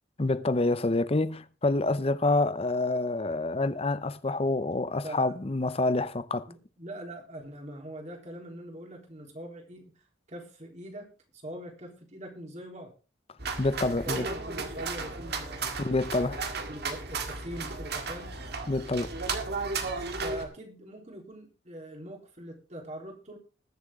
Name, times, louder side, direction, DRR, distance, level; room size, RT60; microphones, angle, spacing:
voice 1, 0.2-6.5 13.6-14.3 15.8-16.4 18.7-19.1, left 2 dB, 30° left, 0.7 m, -27 dB
voice 2, 5.0-5.3 6.5-10.0 10.3-12.9 13.9-15.8 16.3-16.4 16.7-18.4 20.2-23.4, right 1 dB, 40° right, 3.6 m, -42 dB
sound 1, 13.4-20.4, right 4 dB, 60° right, 1.9 m, -34 dB
20.5 x 7.3 x 3.7 m
head